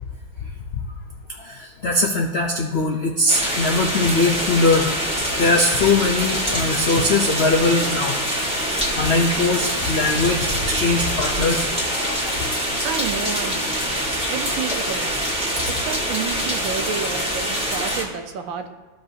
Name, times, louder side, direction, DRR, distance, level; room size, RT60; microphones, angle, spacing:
voice 1, 1.3-4.9 5.4-8.2 9.0-12.3, left 2 dB, 80° left, 1 dB, 0.5 m, -21 dB
sound 1, 3.3-18.0, equal, 5° right, 1.4 m, -24 dB
voice 2, 12.8-15.3 15.7-18.7, right 7 dB, 85° right, 7 dB, 1.5 m, -30 dB
15.0 x 5.1 x 2.8 m, 1.4 s
omnidirectional pair, 2.1 m